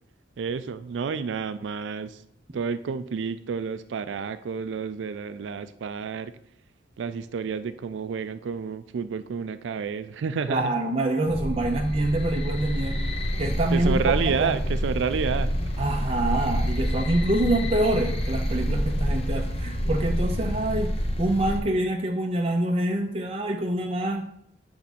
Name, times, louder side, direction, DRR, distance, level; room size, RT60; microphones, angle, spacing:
voice 1, 0.4-2.2 2.5-6.3 7.0-10.7 13.7-15.6, right 6 dB, 85° right, 12 dB, 0.4 m, -30 dB
voice 2, 10.5-13.0 13.4-14.0 14.3-14.5 15.8-20.9 21.2-24.2, right 1 dB, 35° right, 2 dB, 0.5 m, -26 dB
sound 1, 11.3-21.6, equal, 35° left, 0.7 m, -27 dB
8.3 x 3.4 x 4.2 m, 0.70 s
head